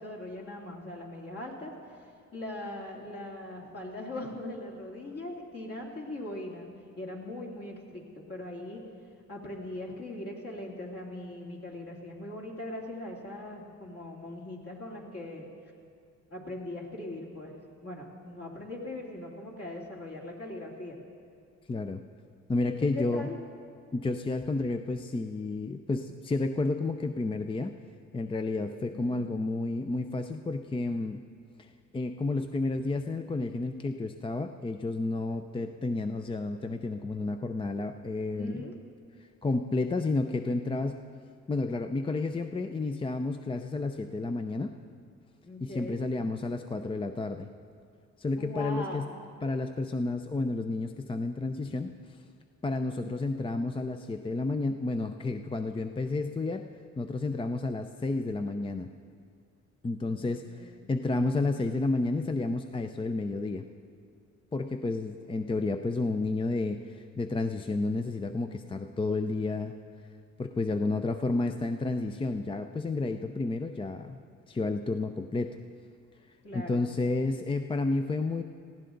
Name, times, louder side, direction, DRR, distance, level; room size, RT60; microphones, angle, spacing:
voice 1, 0.0-1.7 2.3-6.7 7.0-8.9 9.3-15.5 16.3-17.6 17.8-21.0 22.6-23.4 28.8-29.2 38.3-38.7 45.4-46.0 48.4-49.2 60.2-60.9 76.4-76.8, left 1 dB, 50° left, -2 dB, 2.9 m, -40 dB
voice 2, 21.7-22.0 22.5-23.3 23.9-27.7 28.1-31.2 31.6-38.7 39.4-41.0 41.5-44.8 45.6-47.5 48.2-49.1 49.4-51.9 52.6-56.7 57.0-58.9 59.8-63.7 64.5-69.7 70.4-74.2 74.5-75.6 76.5-78.4, left 3 dB, 15° left, 7 dB, 0.5 m, -31 dB
18.0 x 15.0 x 3.9 m, 2.2 s
cardioid pair, 90°, 30 cm